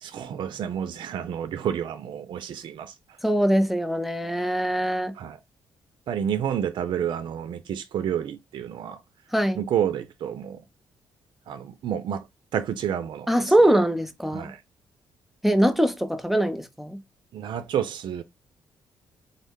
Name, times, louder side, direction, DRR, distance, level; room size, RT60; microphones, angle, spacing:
voice 1, 0.0-3.0 5.2-5.4 6.1-9.0 9.6-10.6 11.5-12.3 12.5-13.5 14.3-14.6 17.3-18.2, right 9 dB, 60° right, 0.3 m, -29 dB
voice 2, 3.2-5.1 9.3-9.6 13.3-14.5 15.4-17.0, right 1 dB, ahead, 0.6 m, -22 dB
3.5 x 2.1 x 3.5 m
supercardioid pair, 65°, 9 cm